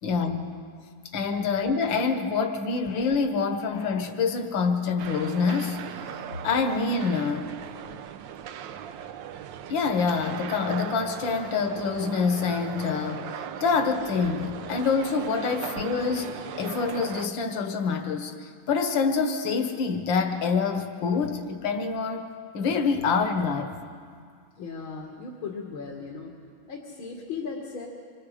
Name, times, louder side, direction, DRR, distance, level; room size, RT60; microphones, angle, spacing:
voice 1, 0.0-0.5 1.1-5.8 6.4-7.5 9.7-22.3 22.5-23.7, left 5 dB, 70° left, 6 dB, 2.1 m, -26 dB
sound 1, 5.0-17.3, right 9 dB, 70° right, 1.4 m, -38 dB
voice 2, 24.5-26.3 26.7-27.9, left 5 dB, 85° left, 0 dB, 2.8 m, -37 dB
26.5 x 25.0 x 5.0 m, 2.1 s
omnidirectional pair, 2.2 m